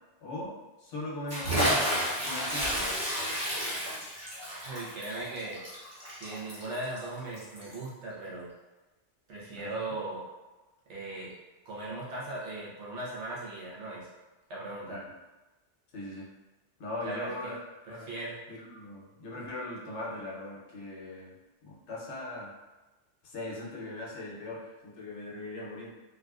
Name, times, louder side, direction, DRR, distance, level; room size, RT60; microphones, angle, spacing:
voice 1, 0.2-1.9 2.2-3.0 9.6-9.9 14.9-15.1 15.9-16.3 16.8-17.6 17.9-18.1 18.5-21.4 21.6-22.5 23.2-25.9, left 1 dB, 75° left, -4 dB, 1.1 m, -40 dB
Bathtub (filling or washing) / Splash splatter, 1.3-7.8, equal, 15° right, 0.7 m, -31 dB
voice 2, 4.6-5.6 6.2-8.5 9.3-10.2 10.9-11.3 11.6-14.1 14.5-15.0 17.0-17.5 17.9-18.4, right 2 dB, 75° right, -6 dB, 1.2 m, -38 dB
3.6 x 2.5 x 2.3 m, 1.1 s
omnidirectional pair, 1.2 m